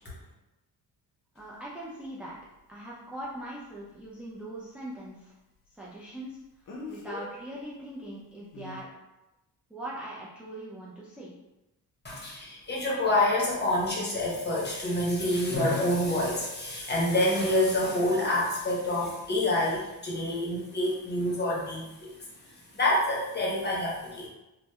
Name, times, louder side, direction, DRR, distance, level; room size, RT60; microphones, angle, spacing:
Speech, 1.4-1.5 6.7-7.3 8.5-8.8, left 2 dB, 50° left, 0.6 m, -40 dB
voice 1, 1.4-2.4 2.7-5.3 5.7-6.4 6.9-8.9 9.7-11.3, right 1 dB, 5° right, -7 dB, 0.4 m, -41 dB
voice 2, 12.0-22.1 22.5-24.3, left 1 dB, 25° left, -4 dB, 0.9 m, -27 dB
2.6 x 2.1 x 2.2 m, 0.98 s
cardioid pair, 70°, 41 cm